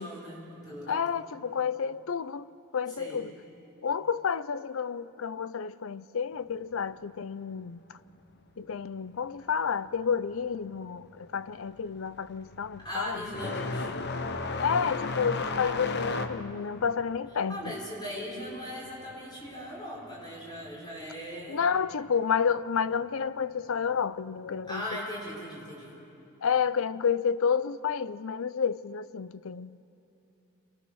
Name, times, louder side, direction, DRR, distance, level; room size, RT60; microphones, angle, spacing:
voice 1, 0.0-1.2 3.0-3.3 12.8-14.0 17.5-21.6 24.7-25.9, equal, 20° left, 5.2 m, -39 dB
voice 2, 0.9-2.5 2.7-3.3 3.8-7.8 8.6-13.3 14.6-17.7 21.5-25.0 26.4-29.8, left 6 dB, 70° left, 0.5 m, -30 dB
sound 1, 10.7-11.1 11.4-19.7 20.0-21.0 22.0-22.1 22.9-23.0 24.8-24.9, left 3 dB, 50° left, 0.9 m, -35 dB
27.0 x 20.0 x 6.3 m
head